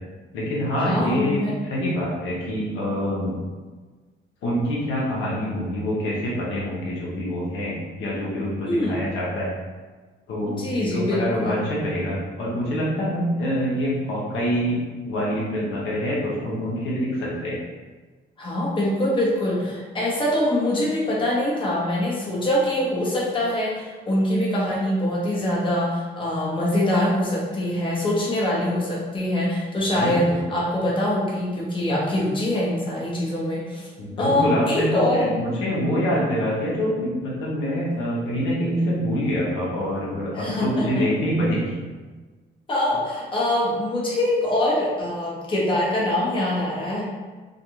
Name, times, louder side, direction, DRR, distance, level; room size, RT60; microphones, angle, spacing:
voice 1, 0.3-3.3 4.4-9.5 10.3-14.7 15.0-17.6 30.0-30.4 34.0-41.7, equal, 85° left, -5 dB, 0.8 m, -25 dB
voice 2, 0.8-1.5 8.6-9.0 10.5-11.6 18.4-33.9 34.2-35.3 40.3-41.0 42.7-47.0, left 1 dB, 25° left, -5 dB, 0.9 m, -24 dB
2.4 x 2.3 x 2.9 m, 1.3 s
cardioid pair, 90°, 20 cm